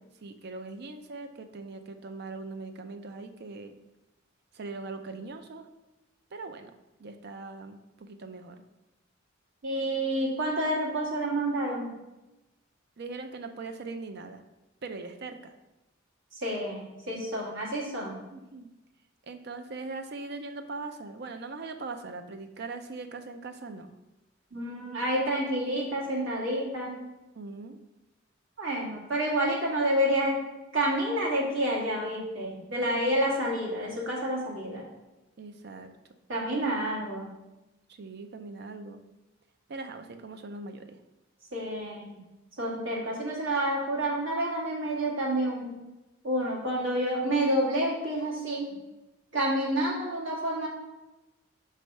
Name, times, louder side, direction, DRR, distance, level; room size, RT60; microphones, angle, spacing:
voice 1, 0.2-3.7 4.5-5.7 6.3-6.7 7.0-8.6 13.0-14.4 14.8-15.5 18.3-18.7 19.2-23.9 27.3-27.8 32.9-33.0 35.4-35.9 37.9-39.0 39.7-41.0, right 3 dB, 55° right, 8 dB, 0.5 m, -40 dB
voice 2, 9.6-11.9 16.4-18.2 24.5-27.0 28.6-30.4 30.7-34.8 36.3-37.3 41.5-42.2 42.6-45.7 46.2-48.7 49.3-50.7, right 1 dB, 75° right, -4 dB, 1.8 m, -29 dB
5.4 x 3.3 x 5.3 m, 1.0 s
head